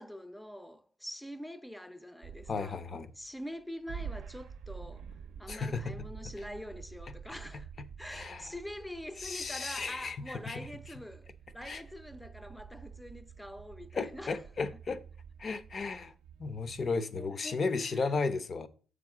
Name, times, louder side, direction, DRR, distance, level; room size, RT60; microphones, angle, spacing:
voice 1, 0.0-2.8 3.2-5.1 5.4-7.7 8.0-14.4 14.7-14.8 17.2-18.2, equal, 5° left, 0.5 m, -45 dB
sound 1, 2.2-3.6 3.9-17.0, right 6 dB, 75° right, 0.5 m, -48 dB
voice 2, 2.5-3.1 5.5-5.9 8.1-8.5 9.2-10.7 11.6-11.8 13.9-15.0 15.4-16.1 16.4-18.7, left 4 dB, 45° left, 0.7 m, -34 dB
7.3 x 5.0 x 4.8 m
cardioid pair, 90°, 0 cm